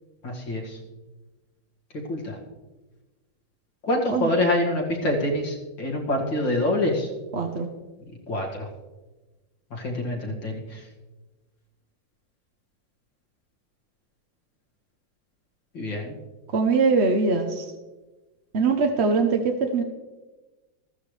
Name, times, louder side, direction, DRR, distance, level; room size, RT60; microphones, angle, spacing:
voice 1, 0.2-0.8 2.1-2.4 3.9-7.1 8.3-8.7 9.7-10.8 15.7-16.1, left 1 dB, 85° left, -1 dB, 2.8 m, -26 dB
voice 2, 7.3-7.7 16.5-17.7 18.5-19.8, right 4 dB, 50° right, 4 dB, 0.9 m, -22 dB
14.5 x 14.0 x 3.3 m, 1.2 s
omnidirectional pair, 2.0 m